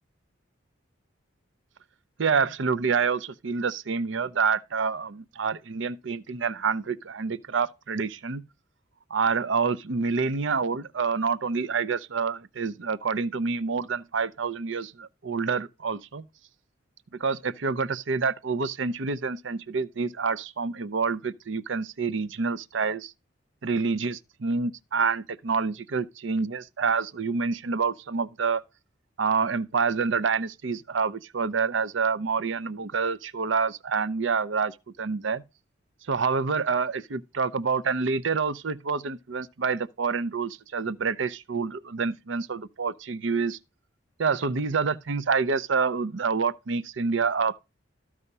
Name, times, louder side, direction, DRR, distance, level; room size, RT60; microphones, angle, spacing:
voice 1, 2.2-8.4 9.1-16.2 17.2-23.1 23.6-28.6 29.2-35.4 36.1-43.6 44.2-47.6, right 5 dB, 70° right, 0.6 m, -27 dB
13.5 x 4.9 x 5.4 m
head